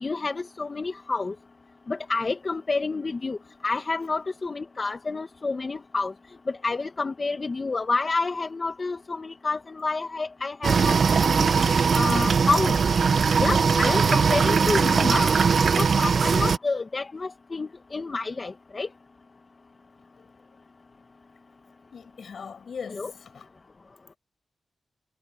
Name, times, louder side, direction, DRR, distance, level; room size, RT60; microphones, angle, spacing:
voice 1, 0.0-1.3 1.9-3.4 3.6-6.1 6.6-11.0 11.3-11.5 11.9-12.7 13.4-15.4 15.8-18.9 22.9-23.1, left 3 dB, 45° left, 1.8 m, -28 dB
sound 1, 10.6-16.6, right 5 dB, 70° right, 1.2 m, -20 dB
voice 2, 21.9-23.4, left 6 dB, 75° left, 6.2 m, -40 dB
cardioid pair, 45°, 0 cm